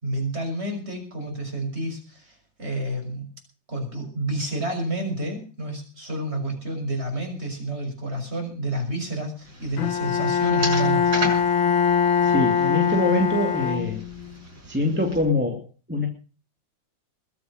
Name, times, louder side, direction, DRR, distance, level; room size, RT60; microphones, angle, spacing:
voice 1, 0.0-3.2 3.7-11.1, right 1 dB, 30° right, 3 dB, 6.7 m, -29 dB
sound 1, 9.5-15.2, right 2 dB, 70° right, 7.0 m, -36 dB
Bowed string instrument, 9.8-14.3, left 7 dB, 80° left, 2.3 m, -22 dB
voice 2, 12.2-14.0 14.7-16.1, left 2 dB, 5° right, 1 dB, 2.3 m, -24 dB
21.5 x 8.3 x 6.5 m, 0.36 s
omnidirectional pair, 2.1 m